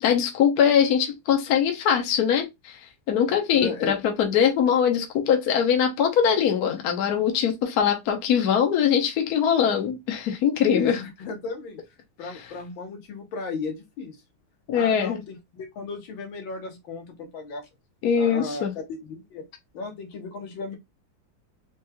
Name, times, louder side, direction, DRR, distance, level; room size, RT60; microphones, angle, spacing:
voice 1, 0.0-2.8 3.1-11.0 14.7-15.2 18.0-18.7, left 8 dB, 60° left, 1.1 m, -22 dB
voice 2, 3.5-4.0 10.7-11.8 12.2-14.2 14.7-17.7 18.1-19.5 19.7-20.8, left 4 dB, 75° left, 1.8 m, -35 dB
4.5 x 3.1 x 2.2 m
omnidirectional pair, 2.2 m